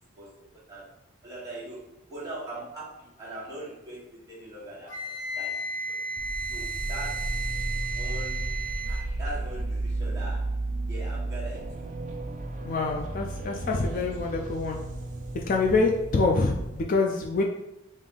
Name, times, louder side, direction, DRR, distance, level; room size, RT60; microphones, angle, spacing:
voice 1, 1.2-5.6 5.9-6.0 6.5-7.5 7.9-8.6 8.9-10.6 10.9-11.9 12.7-13.0 13.5-14.4, right 1 dB, 15° right, -9 dB, 1.5 m, -41 dB
Wind instrument woodwind instrument, 4.9-9.1, right 3 dB, 60° left, 1.0 m, -34 dB
sound 1, 6.2-16.8, right 2 dB, 35° right, 0.4 m, -33 dB
voice 2, 12.6-14.8 15.3-17.4, left 3 dB, 40° left, 1 dB, 0.3 m, -26 dB
3.6 x 2.6 x 3.8 m, 0.93 s
head